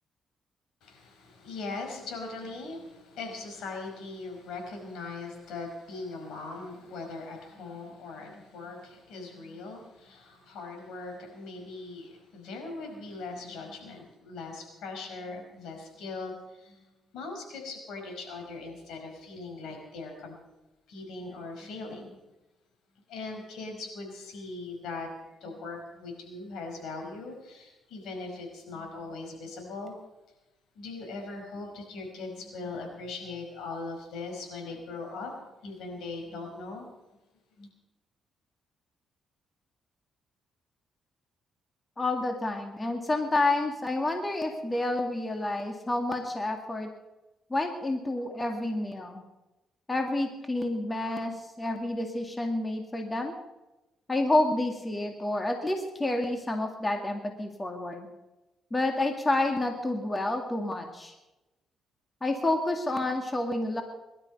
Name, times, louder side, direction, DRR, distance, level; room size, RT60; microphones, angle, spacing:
voice 1, 0.8-20.3 20.9-22.2 23.1-25.1 25.4-29.9 30.7-35.4 35.6-36.9 37.6-37.7, left 3 dB, 80° left, 3 dB, 5.1 m, -40 dB
voice 2, 42.0-46.9 47.5-49.2 49.9-53.3 54.1-58.1 58.7-61.1 62.2-63.8, left 2 dB, 20° left, 4 dB, 2.1 m, -29 dB
21.5 x 12.0 x 5.4 m, 1.0 s
cardioid pair, 90°, 0 cm